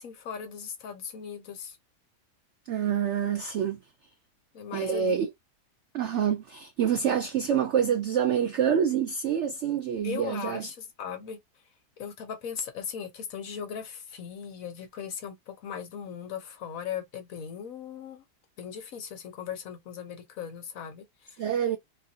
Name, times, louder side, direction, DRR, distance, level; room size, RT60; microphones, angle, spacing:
voice 1, 0.0-1.8 4.5-5.2 10.0-11.4 12.0-18.2 18.6-21.4, left 8 dB, 65° left, 1.0 m, -38 dB
voice 2, 2.7-3.8 4.7-5.3 5.9-10.7 21.4-21.8, right 8 dB, 80° right, 0.6 m, -27 dB
2.9 x 2.5 x 2.7 m
omnidirectional pair, 1.8 m